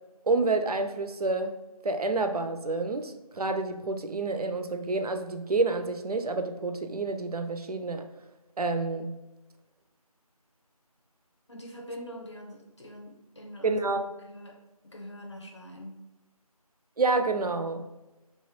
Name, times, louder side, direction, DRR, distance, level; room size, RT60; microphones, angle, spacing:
voice 1, 0.3-1.5 1.8-8.0 8.6-9.1 13.6-14.0 17.0-17.8, right 3 dB, 75° right, 7 dB, 0.4 m, -28 dB
voice 2, 11.5-14.0 14.3-16.0, equal, 45° left, 0 dB, 0.6 m, -44 dB
3.0 x 2.2 x 3.0 m, 1.0 s
figure-of-eight pair, 170°, 20 cm